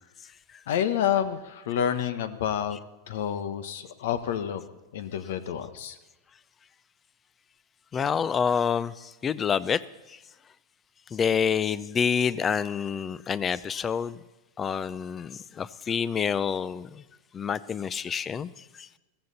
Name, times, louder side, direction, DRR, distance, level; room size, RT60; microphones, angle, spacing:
voice 1, 0.7-2.8 3.1-4.6 4.9-6.0, left 9 dB, 75° left, 1.2 m, -28 dB
voice 2, 7.9-9.8 10.1-10.2 11.1-14.2 14.6-17.0 17.3-18.5 18.8-18.9, left 7 dB, 25° left, 0.5 m, -27 dB
16.0 x 14.5 x 4.2 m
supercardioid pair, 125°, 0 cm